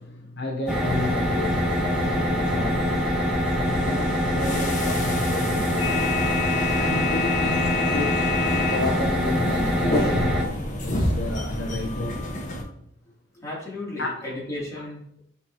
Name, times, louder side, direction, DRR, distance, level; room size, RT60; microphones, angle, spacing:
voice 1, 0.0-6.1 6.7-10.5 10.8-12.2 14.0-14.1 14.8-14.9, left 2 dB, 55° left, 0.8 m, -32 dB
sound 1, 0.7-12.6, left 2 dB, 40° left, 1.3 m, -29 dB
sound 2, 0.7-10.4, equal, 5° right, 0.9 m, -25 dB
voice 2, 13.3-15.2, left 1 dB, 15° left, 2.8 m, -34 dB
8.1 x 5.4 x 2.9 m
head